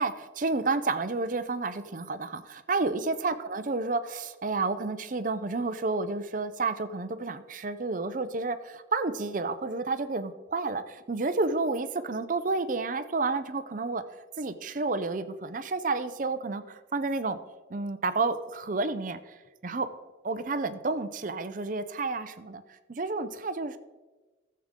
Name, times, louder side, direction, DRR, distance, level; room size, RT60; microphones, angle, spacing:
voice 1, 0.0-14.0 14.4-17.4 17.7-19.9 20.2-23.8, right 3 dB, 45° right, 11 dB, 0.6 m, -30 dB
15.0 x 7.6 x 3.7 m, 1.2 s
head